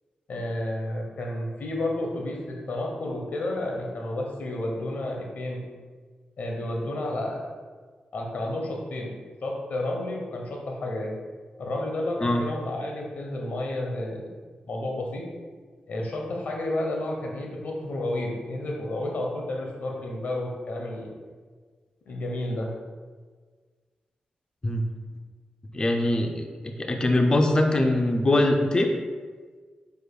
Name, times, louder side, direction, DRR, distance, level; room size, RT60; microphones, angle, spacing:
voice 1, 0.3-5.6 6.4-7.5 8.1-9.1 9.4-11.1 11.6-14.3 14.7-15.2 15.9-21.1 22.1-22.7, left 1 dB, 70° left, 0 dB, 0.9 m, -31 dB
voice 2, 25.7-28.9, left 1 dB, 30° left, 3 dB, 0.4 m, -22 dB
4.8 x 4.7 x 2.2 m, 1.5 s
cardioid pair, 85°, 3 cm